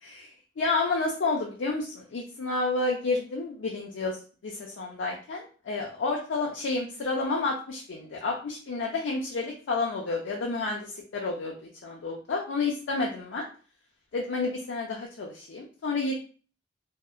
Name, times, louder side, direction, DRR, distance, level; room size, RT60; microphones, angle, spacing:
voice 1, 0.0-4.2 4.4-11.5 11.8-13.4 14.1-16.1, left 3 dB, 80° left, -1 dB, 0.4 m, -30 dB
2.7 x 2.0 x 2.4 m, 0.38 s
head